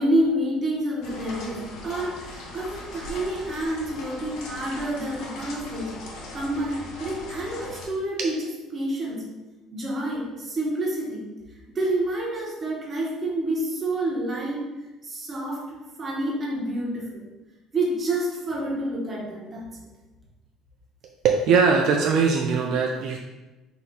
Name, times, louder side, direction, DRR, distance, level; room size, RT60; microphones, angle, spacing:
voice 1, 0.0-6.0 6.3-8.4 8.7-9.3 9.7-11.3 11.7-14.7 15.0-17.3 17.7-19.9, right 1 dB, 30° right, -3 dB, 1.0 m, -28 dB
sound 1, 1.0-7.8, left 2 dB, 75° left, 0.9 m, -39 dB
voice 2, 21.2-23.2, right 5 dB, 65° right, 1 dB, 0.3 m, -21 dB
4.2 x 2.3 x 3.9 m, 1.1 s
cardioid pair, 130°, 0 cm